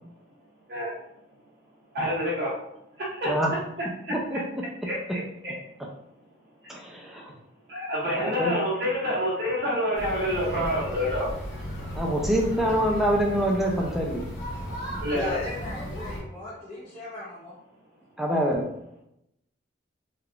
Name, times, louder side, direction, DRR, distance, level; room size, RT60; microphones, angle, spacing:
voice 1, 1.9-2.5 3.0-3.3 4.1-4.2 4.8-5.5 7.7-11.3 15.0-15.4, equal, 55° right, -7 dB, 0.8 m, -27 dB
voice 2, 4.1-4.6 6.7-7.3 8.2-8.5 12.0-14.2 18.2-18.7, equal, ahead, -1 dB, 0.5 m, -25 dB
sound 1, 9.9-16.2, equal, 60° left, 1.1 m, -35 dB
voice 3, 15.0-17.6, left 1 dB, 25° left, -11 dB, 0.9 m, -37 dB
3.4 x 3.3 x 2.4 m, 0.80 s
head